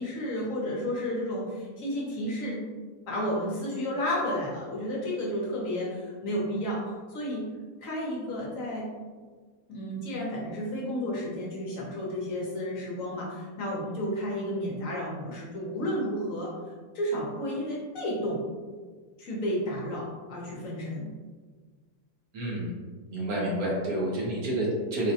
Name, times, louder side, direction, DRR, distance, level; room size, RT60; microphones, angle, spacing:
voice 1, 0.0-2.6 3.1-6.8 7.1-7.5 7.8-8.9 9.7-16.5 16.9-18.4 19.2-21.0, equal, 60° left, -5 dB, 1.0 m, -32 dB
voice 2, 22.3-22.7 23.1-25.1, right 1 dB, 65° right, -4 dB, 1.2 m, -29 dB
3.9 x 2.2 x 2.7 m, 1.5 s
omnidirectional pair, 1.7 m